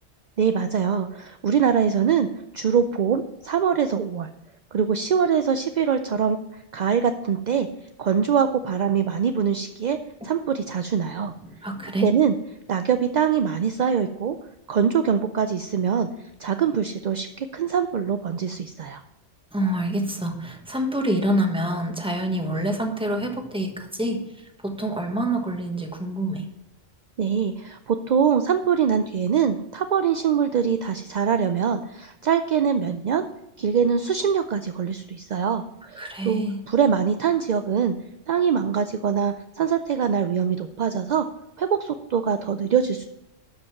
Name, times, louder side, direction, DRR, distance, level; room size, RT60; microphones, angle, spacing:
voice 1, 0.4-2.3 2.5-4.3 4.7-7.7 8.0-10.0 10.2-11.3 12.0-12.3 12.7-14.4 14.7-16.1 16.4-19.0 27.2-33.2 33.6-38.0 38.3-41.2 41.6-43.0, right 7 dB, 55° right, 8 dB, 0.5 m, -23 dB
voice 2, 11.4-12.1 19.5-26.5 36.0-36.6, right 1 dB, 5° right, 3 dB, 1.2 m, -27 dB
12.0 x 5.3 x 5.8 m, 0.85 s
omnidirectional pair, 1.2 m